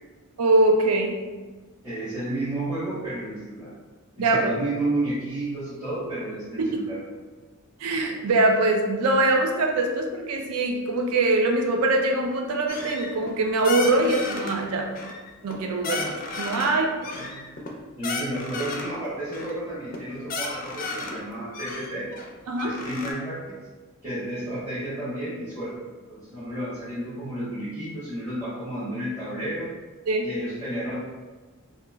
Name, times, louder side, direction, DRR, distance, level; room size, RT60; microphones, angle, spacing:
voice 1, 0.4-1.2 4.2-4.5 6.6-6.8 7.8-14.9 15.4-16.9 22.5-22.7 30.1-30.2, right 2 dB, 80° right, 2 dB, 0.4 m, -23 dB
voice 2, 1.8-3.7 4.2-7.0 17.0-17.4 18.0-22.1 22.6-23.5 24.0-25.8 26.1-29.7 30.2-30.9, right 1 dB, 15° right, -14 dB, 0.9 m, -31 dB
sound 1, 12.7-13.4 13.6-14.5 14.9-15.6 15.8-16.7 17.0-19.0 19.3-19.6 19.9-20.0 20.2-21.2 21.5-23.1, left 3 dB, 40° left, 0.4 m, -33 dB
3.0 x 2.3 x 2.2 m, 1.3 s
head